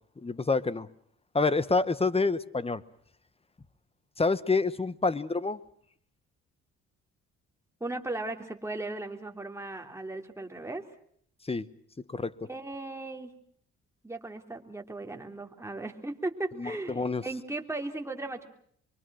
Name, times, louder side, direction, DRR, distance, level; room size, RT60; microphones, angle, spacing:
voice 1, 0.2-0.9 1.3-2.8 4.2-5.6 11.4-11.7 12.1-12.5 16.6-17.2, left 3 dB, 20° left, 15 dB, 1.1 m, -27 dB
voice 2, 7.8-10.9 12.5-13.3 14.0-18.5, right 2 dB, 10° right, 3 dB, 3.3 m, -37 dB
25.0 x 24.0 x 6.3 m, 0.62 s
cardioid pair, 90°, 30 cm